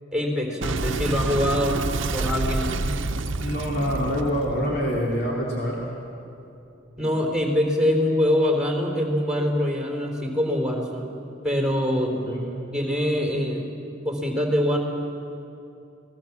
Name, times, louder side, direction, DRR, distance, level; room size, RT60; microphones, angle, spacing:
voice 1, 0.1-2.7 7.0-11.1 11.4-12.1 12.7-13.7 14.0-14.8, left 1 dB, 5° right, 2 dB, 4.1 m, -24 dB
Boom, 0.6-5.8, right 3 dB, 80° right, 0.8 m, -28 dB
voice 2, 3.4-5.8 12.2-12.5, equal, 55° left, -3 dB, 3.3 m, -26 dB
28.5 x 19.5 x 7.5 m, 2.6 s
head